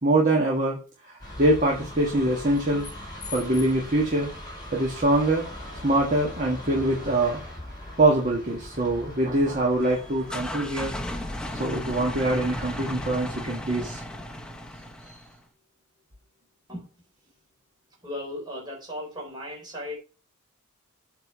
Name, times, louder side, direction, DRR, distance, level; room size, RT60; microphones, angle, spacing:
voice 1, 0.0-0.8 1.1-2.9 3.3-4.3 4.7-5.5 5.8-7.4 8.0-10.9 11.6-14.0, right 1 dB, 35° right, -1 dB, 1.5 m, -24 dB
sound 1, 1.2-13.1, left 1 dB, 20° left, 4.6 m, -40 dB
sound 2, 9.8-15.4, equal, 5° left, 0.9 m, -35 dB
voice 2, 18.0-20.0, left 1 dB, 20° right, -3 dB, 4.0 m, -36 dB
7.9 x 4.5 x 5.4 m, 0.33 s
head